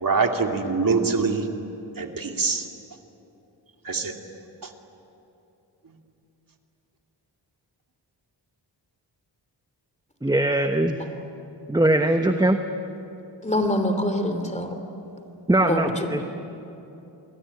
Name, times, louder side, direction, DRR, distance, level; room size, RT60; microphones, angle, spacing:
voice 1, 0.0-1.5 2.0-2.6 3.8-4.1, right 4 dB, 50° right, 3 dB, 2.5 m, -24 dB
voice 2, 10.2-11.0 11.7-12.6 15.5-16.2, right 1 dB, 10° right, 6 dB, 1.2 m, -21 dB
voice 3, 13.4-14.7 15.7-16.2, left 1 dB, 15° left, 7 dB, 3.2 m, -25 dB
28.0 x 21.5 x 9.6 m, 2.9 s
cardioid pair, 75°, 44 cm